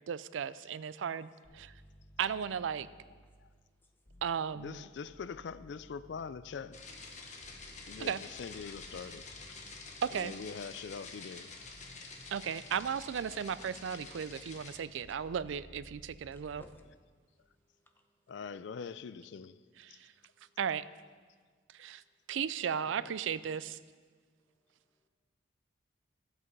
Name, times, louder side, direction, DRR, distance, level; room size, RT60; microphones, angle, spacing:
voice 1, 0.1-1.7 2.2-2.9 4.2-4.8 8.0-8.2 10.0-10.3 12.3-16.6 19.8-20.1 20.6-20.9 21.7-22.0 22.3-23.8, right 7 dB, 85° right, 0.4 m, -35 dB
sound 1, 1.4-3.6 4.1-11.2 11.7-16.7, equal, 85° left, 4.4 m, -58 dB
voice 2, 4.5-6.8 7.9-9.3 10.1-11.5 14.2-14.4 18.3-20.0 22.7-23.1, left 6 dB, 65° left, 0.4 m, -44 dB
sound 2, 6.7-14.8, left 4 dB, 40° left, 1.2 m, -49 dB
voice 3, 16.3-16.8 17.7-18.2 20.2-20.6 24.6-25.0, equal, 10° left, 0.9 m, -62 dB
14.5 x 8.0 x 5.4 m
head